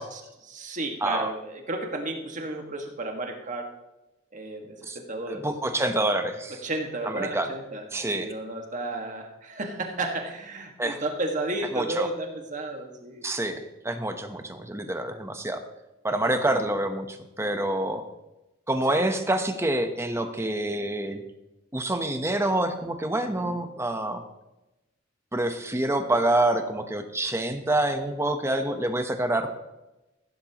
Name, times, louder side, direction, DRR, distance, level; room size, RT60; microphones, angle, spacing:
voice 1, 0.0-3.7 4.3-5.5 6.6-7.8 8.1-13.3 23.4-23.6, right 2 dB, 40° right, 2 dB, 1.8 m, -33 dB
voice 2, 5.3-6.6 7.0-7.5 7.9-8.3 10.8-11.0 11.7-12.1 13.2-15.6 16.0-18.0 18.7-21.2 21.7-24.2 25.3-29.5, right 1 dB, 15° right, 7 dB, 1.0 m, -27 dB
15.0 x 12.0 x 3.0 m, 0.98 s
head